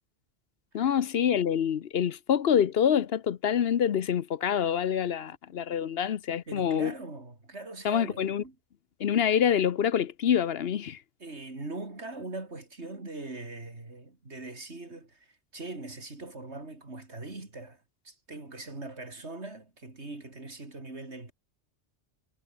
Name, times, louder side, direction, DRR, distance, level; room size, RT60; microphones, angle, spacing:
voice 1, 0.7-6.9 7.8-8.4 9.0-11.0, left 8 dB, 60° left, 0.9 m, -26 dB
voice 2, 6.5-8.6 11.2-15.3 15.5-21.3, right 2 dB, 65° right, 4.4 m, -41 dB
omnidirectional pair, 1.2 m